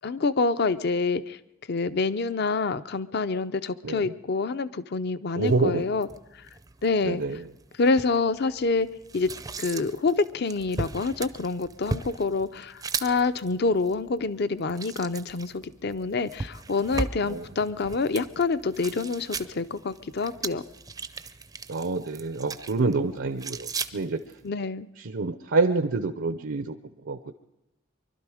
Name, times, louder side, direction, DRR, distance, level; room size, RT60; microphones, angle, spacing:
voice 1, 0.0-1.4 1.7-6.1 6.8-7.2 7.8-8.9 9.1-9.3 9.6-20.6 24.4-24.9, left 4 dB, 55° left, 14 dB, 0.6 m, -27 dB
voice 2, 3.8-4.1 5.4-5.8 7.0-7.5 17.2-17.4 21.7-24.2 25.0-26.8 27.1-27.3, right 3 dB, 80° right, 8 dB, 0.7 m, -27 dB
sound 1, 5.4-24.5, right 3 dB, 20° right, 0.5 m, -38 dB
24.5 x 12.0 x 4.9 m, 0.90 s
head